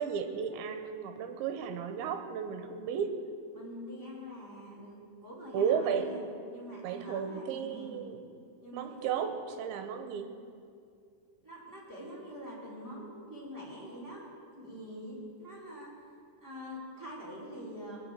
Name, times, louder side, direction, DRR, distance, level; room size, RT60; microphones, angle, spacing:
voice 1, 0.0-3.2 5.5-6.1 6.8-8.2 8.7-10.3, right 7 dB, 80° right, 8 dB, 3.3 m, -33 dB
voice 2, 3.5-6.2 6.5-8.0 8.6-9.3 11.4-14.2 14.5-15.9 16.4-18.0, equal, 5° right, -8 dB, 4.8 m, -45 dB
21.0 x 7.4 x 8.8 m, 2.4 s
omnidirectional pair, 5.3 m